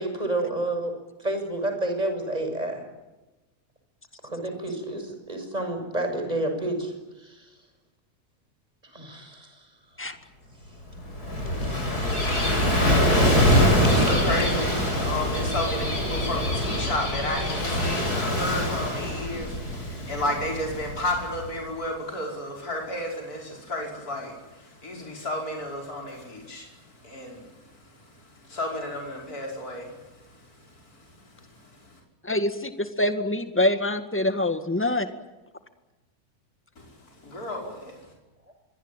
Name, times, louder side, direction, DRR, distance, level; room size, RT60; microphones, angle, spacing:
voice 1, 0.0-2.8 4.2-6.9 7.2-7.5 8.9-9.6 14.0-14.1 38.5-38.6, right 1 dB, 25° right, 5 dB, 6.6 m, -30 dB
Gull seagull / Waves surf, 10.9-21.5, equal, 90° left, 8.1 m, -24 dB
voice 2, 13.5-26.8 27.0-27.5 28.5-30.0 31.6-31.7 37.2-38.0, left 1 dB, 70° left, 0 dB, 5.7 m, -32 dB
voice 3, 32.2-35.1, left 1 dB, 10° left, 8 dB, 1.9 m, -25 dB
26.0 x 23.0 x 9.1 m, 1.1 s
omnidirectional pair, 1.6 m